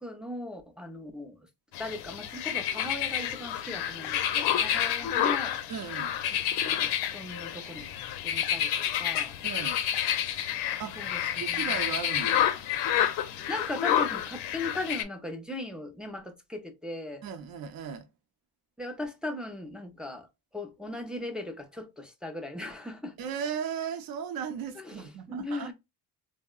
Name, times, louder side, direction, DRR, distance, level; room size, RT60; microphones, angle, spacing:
voice 1, 0.0-1.5 1.8-5.6 6.6-7.9 8.2-9.4 11.0-11.9 13.3-17.2 18.8-20.3 20.5-23.2 24.8-25.7, left 2 dB, ahead, 0.3 m, -38 dB
sound 1, 1.7-15.0, left 10 dB, 80° left, 0.6 m, -29 dB
voice 2, 5.7-6.1 9.4-9.8 10.8-12.4 17.2-18.1 23.2-25.7, right 7 dB, 60° right, 0.6 m, -36 dB
3.6 x 2.0 x 2.3 m
cardioid pair, 130°, 39 cm